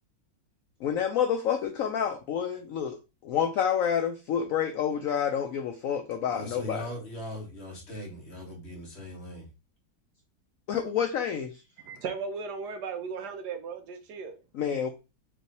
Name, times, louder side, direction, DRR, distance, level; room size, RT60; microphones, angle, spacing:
voice 1, 0.8-6.9 10.7-11.6 14.5-14.9, left 8 dB, 70° left, 0.8 m, -28 dB
voice 2, 6.3-9.4, equal, 40° left, 1.4 m, -39 dB
voice 3, 11.8-14.4, right 5 dB, 70° right, 1.2 m, -36 dB
3.4 x 3.2 x 4.0 m
omnidirectional pair, 1.9 m